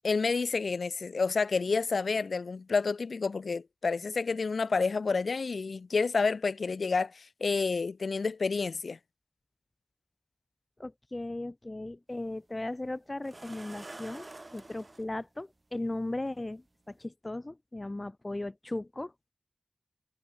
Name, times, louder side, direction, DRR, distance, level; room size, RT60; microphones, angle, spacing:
voice 1, 0.0-9.0, left 4 dB, 75° left, 2.0 m, -29 dB
voice 2, 10.8-19.1, left 2 dB, 30° left, 1.2 m, -37 dB
sound 1, 12.1-12.2 13.2-15.0 16.3-16.4 16.9-17.0, right 2 dB, 35° right, 5.8 m, -47 dB
wide cardioid pair, 70°, 0 cm